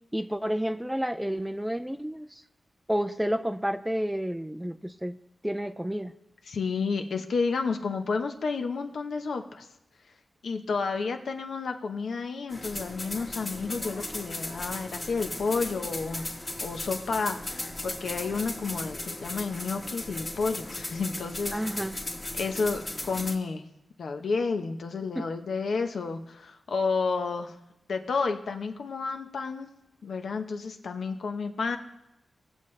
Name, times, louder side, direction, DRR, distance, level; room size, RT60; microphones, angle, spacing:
voice 1, 0.1-2.4 2.9-5.2 5.4-6.1 21.5-22.0 25.2-25.3, equal, 5° right, 10 dB, 0.4 m, -30 dB
voice 2, 6.5-9.7 10.4-16.2 16.6-21.6 22.4-23.6 24.0-27.6 27.9-29.7 30.0-31.8, left 4 dB, 80° left, 5 dB, 0.9 m, -31 dB
sound 1, 12.5-23.4, left 2 dB, 30° left, 1.5 m, -37 dB
19.0 x 7.1 x 3.2 m, 0.86 s
wide cardioid pair, 100°, 0 cm